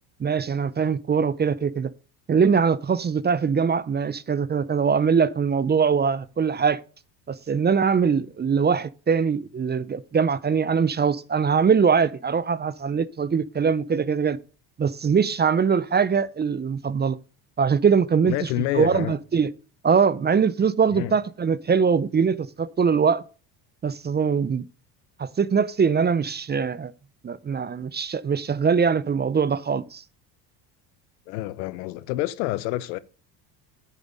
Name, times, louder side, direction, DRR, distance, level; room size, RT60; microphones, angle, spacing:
voice 1, 0.2-1.9 2.3-6.8 7.3-14.4 14.8-17.2 17.6-18.5 18.7-19.5 19.8-23.2 23.8-24.6 25.2-26.9 27.2-30.0, right 6 dB, 20° right, 0.6 m, -22 dB
voice 2, 18.2-19.2 20.9-21.2 31.3-33.0, left 15 dB, 90° left, 0.9 m, -28 dB
9.2 x 7.3 x 5.3 m
supercardioid pair, 95°, 50 cm